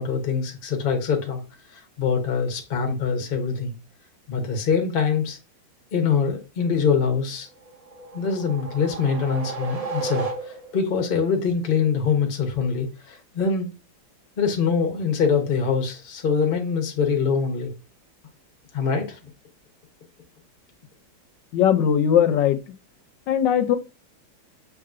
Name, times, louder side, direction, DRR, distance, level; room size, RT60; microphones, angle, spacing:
voice 1, 0.0-1.4 1.7-3.7 4.3-5.4 5.9-7.5 8.1-13.7 14.4-17.7 18.7-19.2, left 6 dB, 45° left, 0.7 m, -24 dB
sound 1, 7.6-10.9, right 3 dB, 65° right, 0.3 m, -33 dB
voice 2, 21.5-22.6 23.3-23.8, left 9 dB, 75° left, 1.2 m, -19 dB
5.8 x 3.0 x 2.5 m
omnidirectional pair, 2.1 m